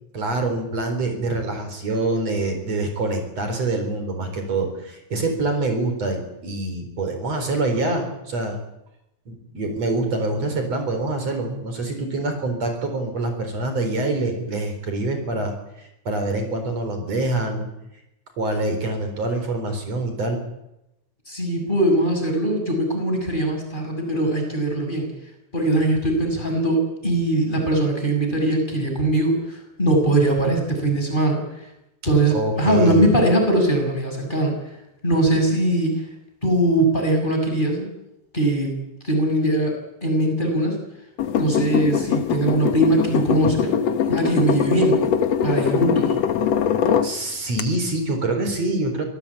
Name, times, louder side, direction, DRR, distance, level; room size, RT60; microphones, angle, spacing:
voice 1, 0.1-8.6 9.3-17.7 18.4-20.4 32.3-33.1 47.0-49.0, right 2 dB, 60° right, 6 dB, 5.4 m, -25 dB
voice 2, 21.3-25.1 25.5-31.4 32.0-34.5 35.0-35.9 36.4-37.9 38.3-38.8 39.0-40.8 41.4-43.7 44.1-45.0 45.4-46.1, right 1 dB, 15° left, 2 dB, 7.0 m, -21 dB
sound 1, 41.2-47.1 47.6-47.7, left 8 dB, 65° left, 2.5 m, -22 dB
26.5 x 18.0 x 8.7 m, 0.86 s
omnidirectional pair, 3.3 m